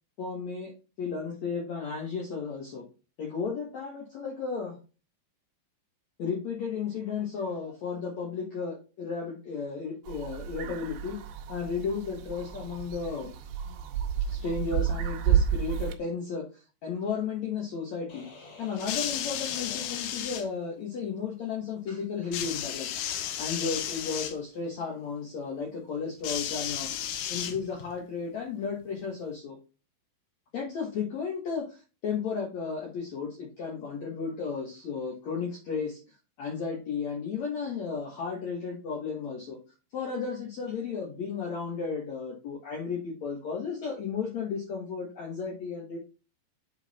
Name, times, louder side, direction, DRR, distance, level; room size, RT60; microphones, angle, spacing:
voice 1, 0.2-0.7 1.0-2.8 3.2-4.8 6.2-11.2 11.5-13.3 14.3-18.3 18.6-29.6 30.5-36.0 36.4-39.6 39.9-46.0, left 5 dB, 75° left, -1 dB, 1.6 m, -34 dB
sound 1, 10.1-16.0, right 9 dB, 80° right, 2.3 m, -30 dB
sound 2, 18.1-20.7, left 3 dB, 45° left, 2.8 m, -49 dB
sound 3, 18.8-20.5 22.3-24.4 26.2-27.9 28.9-29.0, left 10 dB, 90° left, 3.3 m, -33 dB
8.0 x 3.8 x 4.1 m, 0.32 s
omnidirectional pair, 5.2 m